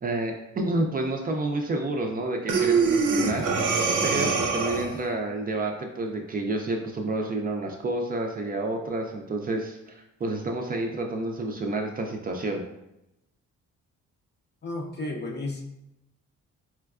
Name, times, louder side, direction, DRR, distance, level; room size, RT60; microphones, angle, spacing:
voice 1, 0.0-12.6, right 2 dB, 30° right, 2 dB, 0.4 m, -29 dB
Breathing, 2.5-5.0, right 4 dB, 85° right, 0.6 m, -24 dB
voice 2, 14.6-15.6, left 2 dB, 35° left, 1 dB, 0.6 m, -33 dB
4.3 x 2.2 x 2.3 m, 0.87 s
cardioid pair, 90°, 30 cm